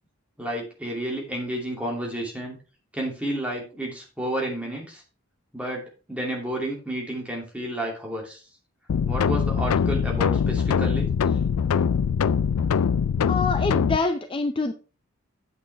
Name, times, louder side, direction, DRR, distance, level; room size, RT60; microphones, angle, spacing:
voice 1, 0.4-2.6 2.9-5.0 5.5-8.4 9.1-11.1, right 1 dB, 5° right, -1 dB, 2.6 m, -31 dB
sound 1, 8.9-14.0, left 6 dB, 90° left, 0.4 m, -23 dB
voice 2, 13.3-14.7, left 3 dB, 25° left, 7 dB, 0.5 m, -25 dB
9.1 x 8.0 x 3.4 m, 0.34 s
head